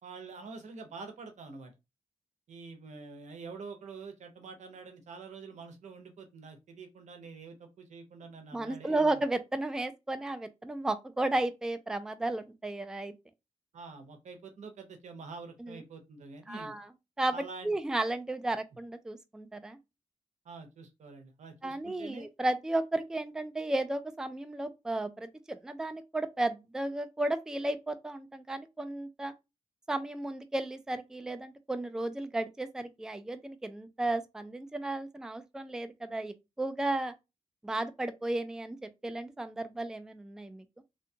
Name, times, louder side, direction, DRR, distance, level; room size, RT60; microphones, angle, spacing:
voice 1, 0.0-1.7 2.5-9.2 13.7-16.7 17.3-17.8 20.4-22.3, right 4 dB, 85° right, 0.7 m, -46 dB
voice 2, 8.5-13.1 15.6-15.8 16.5-16.9 17.2-19.8 21.6-29.3 29.9-37.1 37.6-40.8, right 2 dB, 5° right, 0.3 m, -34 dB
2.7 x 2.2 x 2.7 m
cardioid pair, 85°, 12 cm